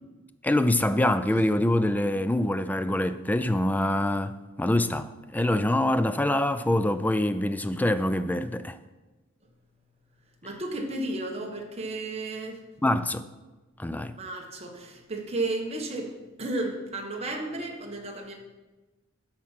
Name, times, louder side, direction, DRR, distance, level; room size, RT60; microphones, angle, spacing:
voice 1, 0.4-8.8 12.8-13.2 13.8-14.2, left 1 dB, 10° left, 0.3 m, -25 dB
voice 2, 10.4-12.6 14.2-18.3, right 2 dB, 30° right, 1.4 m, -33 dB
12.5 x 4.3 x 5.8 m
head